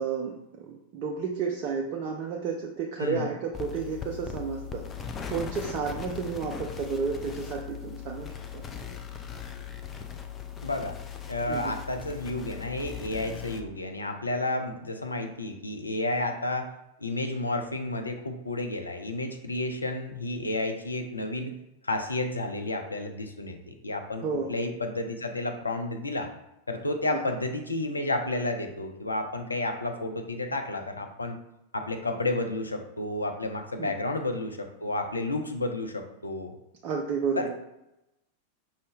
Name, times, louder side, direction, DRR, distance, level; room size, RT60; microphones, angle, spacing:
voice 1, 0.0-4.8 5.3-8.6 11.5-11.8 24.2-24.5 27.1-27.2 33.8-33.9 36.8-37.5, right 5 dB, 40° right, 0 dB, 0.5 m, -32 dB
voice 2, 3.0-3.3 10.6-11.0 11.3-16.7 17.0-21.5 21.8-26.3 26.7-31.4 31.7-36.5 37.4-37.6, left 2 dB, 80° left, 5 dB, 0.5 m, -31 dB
sound 1, 3.5-13.6, left 7 dB, 20° left, 0.5 m, -39 dB
5.3 x 2.7 x 3.3 m, 0.89 s
figure-of-eight pair, 90°, 0 cm